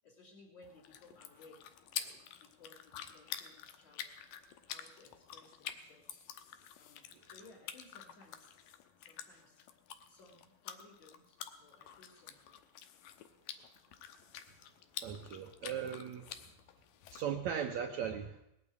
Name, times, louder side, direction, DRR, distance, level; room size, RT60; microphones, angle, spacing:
voice 1, 0.0-1.6 1.9-4.1 4.6-6.2 6.8-8.5 9.0-9.6 10.1-12.6 16.4-16.6, left 2 dB, 50° left, -5 dB, 4.0 m, -60 dB
sound 1, 0.6-17.2, left 9 dB, 75° left, 2.4 m, -48 dB
voice 2, 15.0-16.3 17.1-18.4, right 8 dB, 75° right, 4 dB, 1.7 m, -38 dB
19.0 x 9.0 x 8.3 m, 0.84 s
omnidirectional pair, 4.3 m